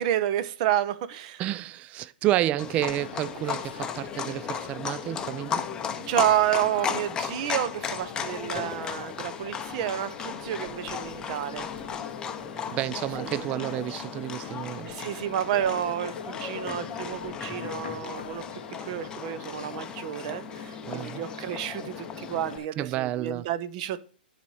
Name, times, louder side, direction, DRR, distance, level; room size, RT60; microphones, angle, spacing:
voice 1, 0.0-1.4 5.9-11.7 13.2-13.5 14.4-24.1, right 11 dB, 45° right, 0.7 m, -30 dB
voice 2, 1.4-5.6 12.7-15.0 20.9-21.2 22.8-23.5, right 14 dB, 25° right, 0.3 m, -30 dB
Livestock farm animals working animals, 2.6-22.6, left 7 dB, 15° left, 0.6 m, -36 dB
sound 1, 2.7-22.7, left 8 dB, 80° left, 0.5 m, -43 dB
10.0 x 4.2 x 4.7 m
hypercardioid pair, 145°, 5 cm